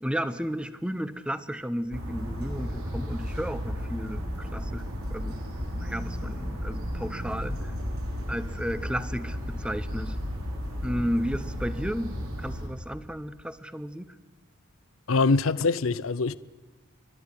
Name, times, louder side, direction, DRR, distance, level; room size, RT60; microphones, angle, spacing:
voice 1, 0.0-5.4 5.7-7.8 8.3-10.2 10.8-14.2, equal, 5° right, 0.8 m, -33 dB
sound 1, 1.9-12.7, equal, 75° right, 5.0 m, -34 dB
voice 2, 15.1-16.4, left 4 dB, 65° left, 0.6 m, -23 dB
29.5 x 12.5 x 9.8 m
head